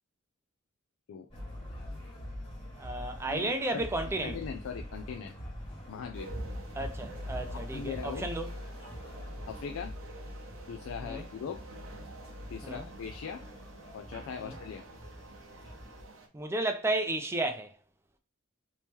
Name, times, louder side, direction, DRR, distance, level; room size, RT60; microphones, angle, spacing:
sound 1, 1.3-16.0, left 1 dB, 25° left, 1.4 m, -43 dB
voice 1, 2.8-4.4 6.7-8.5 11.0-11.3 12.6-12.9 14.4-14.5 16.3-17.7, right 2 dB, 15° right, 0.4 m, -33 dB
voice 2, 3.3-3.9 4.2-5.4 5.9-6.3 7.5-8.3 9.5-9.9 10.7-11.6 12.5-13.4 13.9-14.8, left 6 dB, 80° left, 0.4 m, -40 dB
sound 2, 6.1-16.3, right 3 dB, 75° right, 0.8 m, -50 dB
3.0 x 2.8 x 3.5 m
head